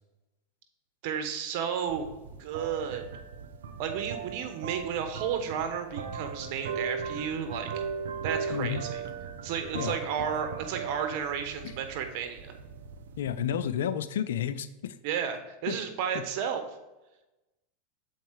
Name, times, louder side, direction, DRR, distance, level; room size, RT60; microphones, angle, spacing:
voice 1, 1.0-2.1 2.4-3.0 3.8-7.7 8.2-9.0 9.4-12.5 15.0-16.6, right 7 dB, 60° right, 7 dB, 1.2 m, -32 dB
sound 1, 1.9-13.5, right 6 dB, 80° right, 0.8 m, -38 dB
voice 2, 8.5-8.8 9.7-10.0 11.6-11.7 13.2-15.0 15.7-15.8 16.1-16.2, left 9 dB, 80° left, 12 dB, 0.5 m, -31 dB
7.1 x 4.5 x 4.7 m, 1.0 s
hypercardioid pair, 105°, 0 cm